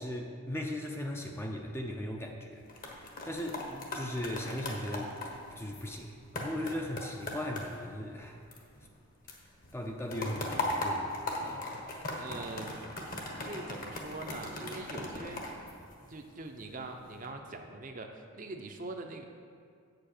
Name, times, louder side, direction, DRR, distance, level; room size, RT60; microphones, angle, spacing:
voice 1, 0.0-8.4 9.7-11.1 11.4-11.9 13.1-13.3, left 1 dB, 10° left, 1 dB, 0.7 m, -38 dB
sound 1, 2.5-9.0 9.3-16.5 17.0-17.3, left 2 dB, 40° left, 1.3 m, -39 dB
voice 2, 12.2-12.7 13.4-15.5 16.1-19.3, right 2 dB, 35° right, 4 dB, 0.7 m, -43 dB
8.0 x 8.0 x 6.6 m, 2.3 s
head